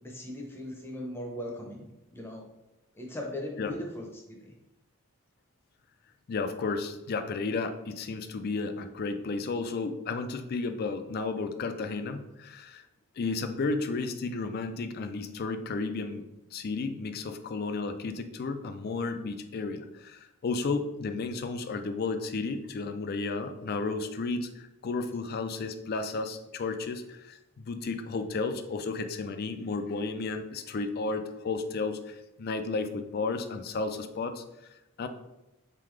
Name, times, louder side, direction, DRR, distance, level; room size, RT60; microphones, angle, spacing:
voice 1, 0.0-2.4 2.9-4.5, left 1 dB, 10° left, 0 dB, 0.7 m, -39 dB
voice 2, 6.3-12.8 13.2-16.2 16.5-35.1, left 3 dB, 45° left, 8 dB, 0.3 m, -33 dB
3.8 x 3.7 x 3.1 m, 0.95 s
head